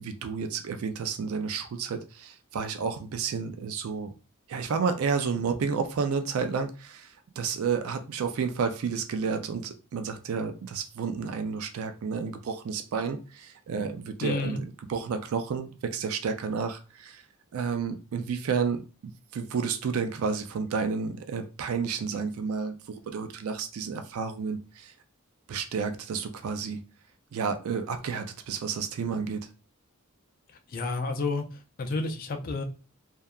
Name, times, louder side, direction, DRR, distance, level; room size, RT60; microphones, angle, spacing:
voice 1, 0.0-4.1 4.5-17.2 17.5-24.9 25.5-26.8 27.3-29.5, right 5 dB, 75° right, 0.3 m, -31 dB
voice 2, 14.2-14.6 30.7-31.5 31.8-32.6, left 3 dB, 40° left, 0.4 m, -30 dB
2.7 x 2.2 x 2.3 m
head